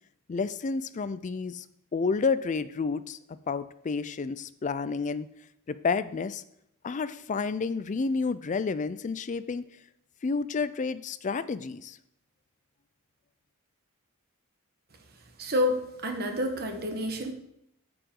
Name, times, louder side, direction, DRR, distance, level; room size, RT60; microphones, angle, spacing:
voice 1, 0.3-1.6 1.9-5.3 5.7-6.4 6.8-9.6 10.2-12.0, left 4 dB, 35° left, 14 dB, 0.4 m, -30 dB
voice 2, 15.4-17.3, left 1 dB, 45° right, 3 dB, 1.2 m, -29 dB
13.5 x 4.9 x 3.8 m, 0.77 s
head